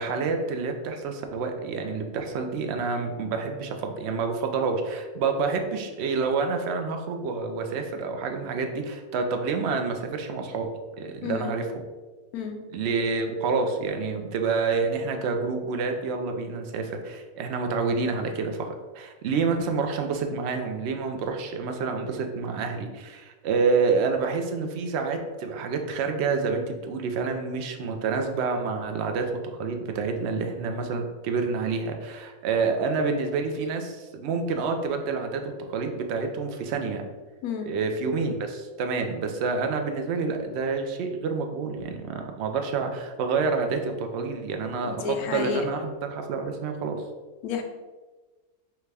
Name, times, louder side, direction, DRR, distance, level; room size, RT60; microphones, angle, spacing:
voice 1, 0.0-10.7 11.0-11.7 12.7-35.4 35.7-37.0 37.7-47.0, right 4 dB, 65° right, 5 dB, 0.6 m, -28 dB
voice 2, 11.2-11.5 12.3-12.6 37.4-37.7 44.8-45.6 47.4-47.6, left 6 dB, 85° left, 4 dB, 1.1 m, -30 dB
5.7 x 2.2 x 3.3 m, 1.3 s
omnidirectional pair, 1.6 m